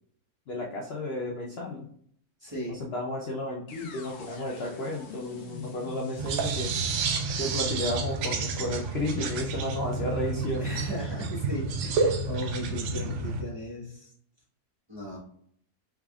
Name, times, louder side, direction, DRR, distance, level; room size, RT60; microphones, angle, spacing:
voice 1, 0.5-1.9 2.7-6.7 7.3-10.7, left 1 dB, 65° left, 0 dB, 0.6 m, -33 dB
voice 2, 2.4-2.8 10.6-14.1 14.9-15.2, left 1 dB, 20° right, -7 dB, 0.8 m, -37 dB
sound 1, 3.7-11.6, left 3 dB, 85° left, 1.2 m, -46 dB
sound 2, 6.2-13.4, right 4 dB, 70° right, 0.7 m, -30 dB
3.5 x 3.4 x 2.3 m, 0.64 s
omnidirectional pair, 1.6 m